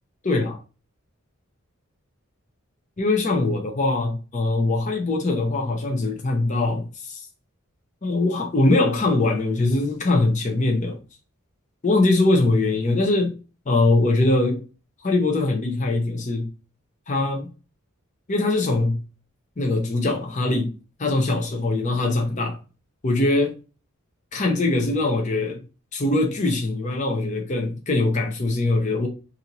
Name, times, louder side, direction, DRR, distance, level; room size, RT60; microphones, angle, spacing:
voice 1, 0.2-0.6 3.0-7.2 8.0-11.0 11.8-13.3 13.7-14.6 15.0-16.5 17.1-17.5 18.3-19.0 19.6-20.7 21.0-22.6 23.0-23.5 24.3-25.6 25.9-29.1, left 2 dB, 35° left, 0.6 m, -22 dB
4.3 x 2.6 x 2.9 m
head